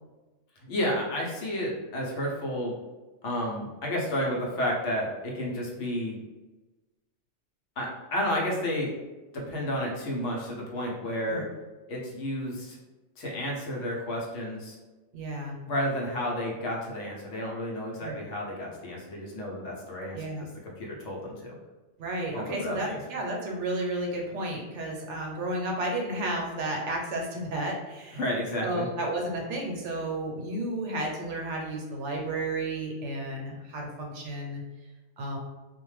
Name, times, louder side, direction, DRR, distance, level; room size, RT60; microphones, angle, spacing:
voice 1, 0.7-2.7 3.2-6.2 7.8-8.9 9.3-11.4 11.9-12.8 13.2-14.8 15.7-20.2 20.6-21.5 22.3-23.0 28.1-28.8, equal, 75° left, -2 dB, 1.0 m, -31 dB
voice 2, 15.1-15.6 18.0-18.2 20.1-20.4 22.0-28.2 28.6-34.6 35.2-35.4, right 1 dB, 75° right, 0 dB, 0.9 m, -32 dB
2.5 x 2.1 x 3.1 m, 1.2 s
omnidirectional pair, 1.3 m